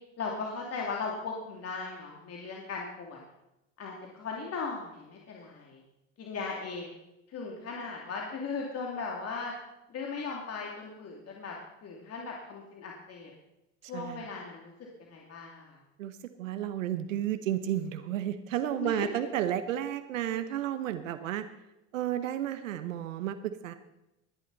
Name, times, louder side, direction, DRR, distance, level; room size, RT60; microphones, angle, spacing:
voice 1, 0.2-3.2 3.8-5.8 6.2-6.9 7.3-9.5 9.9-11.6 11.8-13.3 13.9-14.7 15.0-15.8 18.8-19.1, left 4 dB, 40° left, -1 dB, 2.7 m, -38 dB
voice 2, 13.9-14.2 16.0-21.4 21.9-23.7, right 11 dB, 85° right, 11 dB, 1.0 m, -32 dB
20.5 x 11.0 x 4.1 m, 0.92 s
hypercardioid pair, 80°, 38 cm